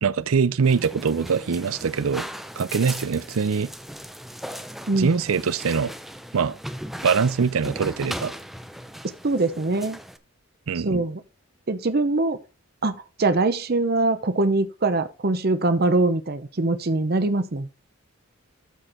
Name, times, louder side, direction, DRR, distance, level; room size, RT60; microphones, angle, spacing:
voice 1, 0.0-2.3 2.6-3.7 4.9-5.9 6.3-6.6 7.0-8.3 10.7-11.0, right 5 dB, 90° right, 0.5 m, -23 dB
sound 1, 0.6-10.2, equal, ahead, 0.6 m, -38 dB
voice 2, 9.2-10.0 10.7-11.2 11.7-12.4 12.8-17.7, right 2 dB, 50° right, 0.7 m, -23 dB
13.0 x 4.4 x 4.4 m
head